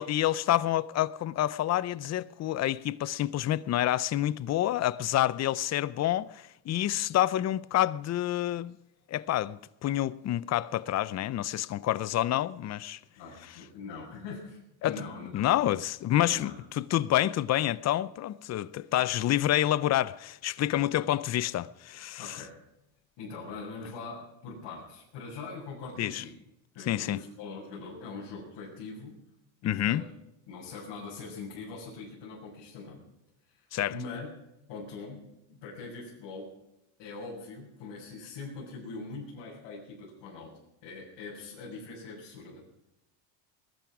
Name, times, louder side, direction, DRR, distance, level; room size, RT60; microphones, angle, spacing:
voice 1, 0.0-8.8 9.1-13.0 14.8-15.0 15.3-22.4 26.0-26.2 26.9-27.2 29.6-30.0 33.7-33.9, left 13 dB, 35° left, 0.6 m, -28 dB
voice 2, 13.2-15.7 16.2-16.6 22.2-22.6 23.2-26.4 26.7-29.2 29.6-30.1 30.5-33.0 33.5-34.3 34.7-35.2 35.5-36.5 37.0-42.6, left 4 dB, 75° left, 7.0 m, -42 dB
21.0 x 12.5 x 4.9 m
cardioid pair, 110°, 45 cm